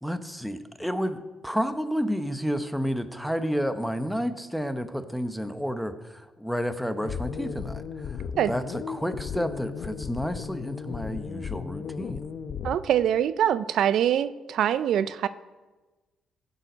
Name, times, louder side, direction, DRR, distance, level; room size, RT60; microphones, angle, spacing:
voice 1, 0.0-8.2 8.5-12.3, equal, ahead, 10 dB, 0.8 m, -30 dB
sound 1, 7.0-12.8, left 6 dB, 60° left, 0.7 m, -35 dB
voice 2, 12.6-15.3, right 10 dB, 75° right, 15 dB, 0.4 m, -24 dB
15.5 x 6.8 x 5.2 m, 1.2 s
cardioid pair, 90°, 0 cm